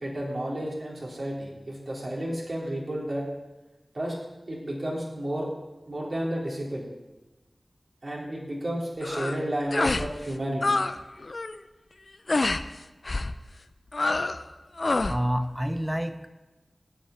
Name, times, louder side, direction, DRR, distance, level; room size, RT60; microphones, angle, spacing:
voice 1, 0.0-3.3 3.9-4.1 4.5-5.5 5.9-6.9 8.0-10.6, right 1 dB, 55° right, -3 dB, 3.5 m, -31 dB
sound 1, 9.0-9.4 9.7-10.1 10.4-10.9 11.2-11.6 12.3-12.6 13.0-13.3 13.9-14.4 14.8-15.2, left 2 dB, 60° left, 0.6 m, -26 dB
voice 2, 15.1-16.3, equal, 10° right, 9 dB, 0.8 m, -28 dB
12.0 x 6.3 x 9.6 m, 1.1 s
wide cardioid pair, 75°, 0 cm